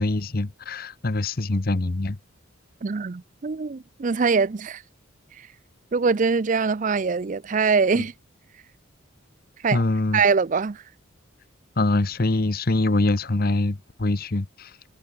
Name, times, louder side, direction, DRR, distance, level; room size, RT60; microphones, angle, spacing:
voice 1, 0.0-2.2 8.0-8.1 9.7-10.2 11.8-14.8, left 2 dB, 45° left, 0.9 m, -24 dB
voice 2, 2.8-4.8 5.4-5.5 5.9-8.1 9.6-9.8 10.1-10.8, right 5 dB, 40° right, 0.5 m, -23 dB
head